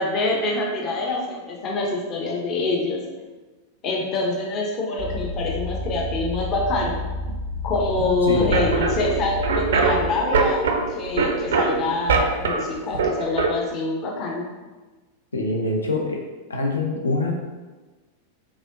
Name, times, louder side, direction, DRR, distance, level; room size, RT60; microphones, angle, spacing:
voice 1, 0.0-3.0 3.8-7.0 7.6-14.5, left 2 dB, 35° left, -1 dB, 0.6 m, -25 dB
sound 1, 5.0-10.1, left 1 dB, 55° left, 1.1 m, -30 dB
voice 2, 8.2-8.7 15.3-16.2 16.5-17.3, left 2 dB, 75° left, 2 dB, 0.4 m, -24 dB
sound 2, 8.4-13.5, right 4 dB, 65° right, 0.3 m, -23 dB
3.5 x 3.3 x 2.5 m, 1.3 s
figure-of-eight pair, 90°, 0 cm